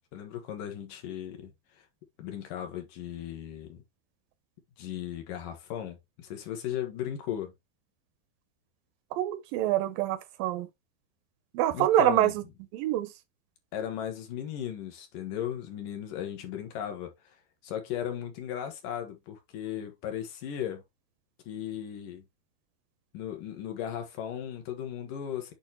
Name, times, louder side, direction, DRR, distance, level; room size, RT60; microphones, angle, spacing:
voice 1, 0.1-1.5 2.2-3.8 4.8-7.5 11.7-12.3 13.7-17.1 17.6-20.8 21.5-22.2 23.1-25.5, left 10 dB, 70° left, 2.7 m, -36 dB
voice 2, 9.1-10.7 11.5-12.3 12.7-13.1, right 12 dB, 80° right, 2.3 m, -25 dB
8.6 x 2.9 x 4.3 m
omnidirectional pair, 4.2 m